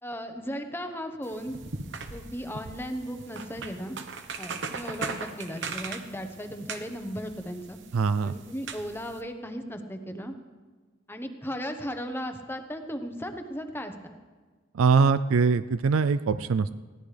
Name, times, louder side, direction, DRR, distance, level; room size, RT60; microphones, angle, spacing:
voice 1, 0.0-1.6 2.1-4.0 4.4-7.8 8.2-10.3 11.1-14.1, equal, 10° left, 6 dB, 1.0 m, -36 dB
sound 1, 1.2-9.2, right 4 dB, 60° right, 1.0 m, -39 dB
voice 2, 7.9-8.3 14.7-16.8, right 5 dB, 85° right, 14 dB, 0.4 m, -23 dB
21.0 x 16.0 x 3.3 m, 1.4 s
head